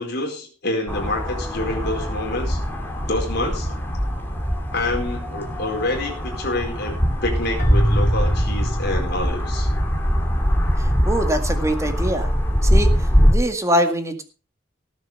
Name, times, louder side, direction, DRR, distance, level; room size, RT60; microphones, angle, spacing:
voice 1, 0.0-2.6 3.1-3.8 4.7-9.7, left 2 dB, 55° left, 1 dB, 4.6 m, -27 dB
sound 1, 0.9-13.4, equal, 10° left, 2.9 m, -22 dB
Keyboard (musical), 7.6-9.8, right 1 dB, 40° left, 5.4 m, -27 dB
voice 2, 10.8-12.3 12.6-14.2, equal, 15° right, 6 dB, 2.0 m, -23 dB
18.5 x 7.3 x 5.5 m, 0.36 s
head